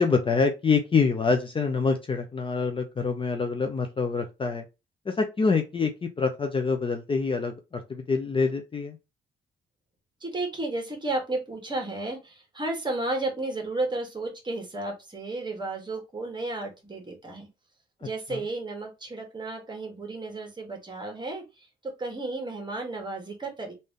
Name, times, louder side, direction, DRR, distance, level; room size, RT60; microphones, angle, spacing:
voice 1, 0.0-4.7 5.1-9.0 18.3-18.4, left 4 dB, 25° left, 5 dB, 0.6 m, -26 dB
voice 2, 10.2-17.5 18.0-21.4 21.8-23.7, right 2 dB, 20° right, 3 dB, 1.5 m, -33 dB
3.3 x 2.7 x 3.6 m, 0.25 s
cardioid pair, 90°, 20 cm